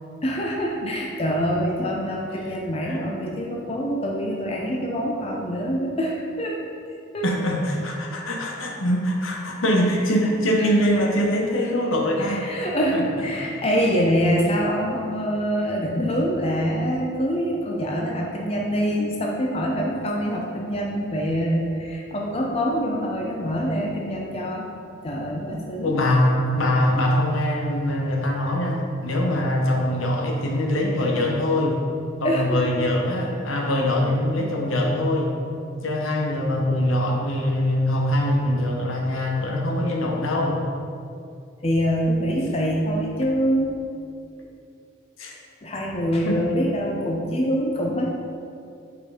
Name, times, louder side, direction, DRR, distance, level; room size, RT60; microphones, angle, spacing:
voice 1, 0.2-6.6 7.1-7.3 10.6-10.7 12.2-24.7 25.0-25.9 32.2-32.6 41.6-43.7 45.6-48.1, equal, 30° left, -1 dB, 0.6 m, -25 dB
voice 2, 7.2-12.4 12.9-13.0 13.8-14.0 25.8-31.8 32.2-35.3 35.8-40.6 45.2-45.3 46.2-46.4, left 1 dB, 85° left, 0 dB, 0.9 m, -23 dB
5.7 x 4.3 x 4.8 m, 2.4 s
head